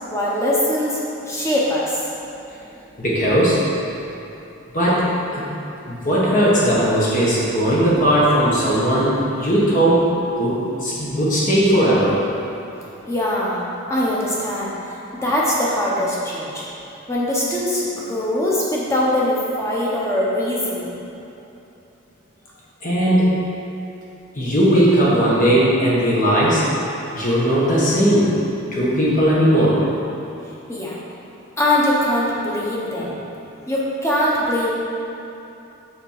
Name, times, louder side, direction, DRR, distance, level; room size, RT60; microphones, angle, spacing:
voice 1, 0.1-1.0 1.3-2.0 13.1-13.6 13.9-14.7 15.2-16.6 17.1-20.9 30.7-31.0 31.6-33.2 33.7-34.7, left 1 dB, 15° left, -6 dB, 1.2 m, -21 dB
voice 2, 3.0-3.6 4.7-5.5 5.8-10.1 10.4-12.2 22.8-23.3 24.3-26.7 27.1-28.4 28.7-29.8, equal, 40° left, -7 dB, 1.4 m, -18 dB
6.5 x 4.4 x 6.7 m, 3.0 s
head